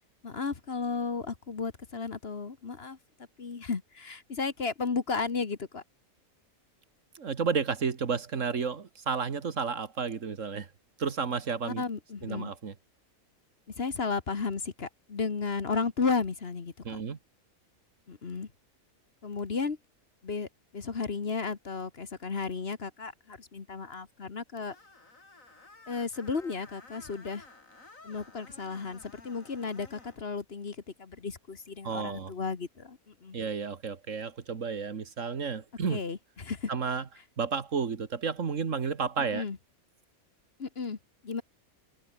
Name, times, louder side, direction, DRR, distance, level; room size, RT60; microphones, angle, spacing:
voice 1, 0.2-3.0 3.4-5.8 11.6-12.5 13.8-17.0 18.1-18.5 19.2-19.8 20.2-20.5 20.7-24.7 25.9-27.4 28.0-33.4 35.9-36.7 39.3-39.6 40.6-41.0 41.2-41.4, left 4 dB, 45° left, 1.6 m, -34 dB
voice 2, 7.2-10.7 11.0-11.8 12.2-12.7 16.8-17.2 31.8-32.3 33.3-36.0 36.7-37.1 37.4-39.4, right 5 dB, 60° right, 1.9 m, -32 dB
Screech, 24.7-30.2, left 3 dB, 65° left, 4.3 m, -54 dB
omnidirectional pair, 1.5 m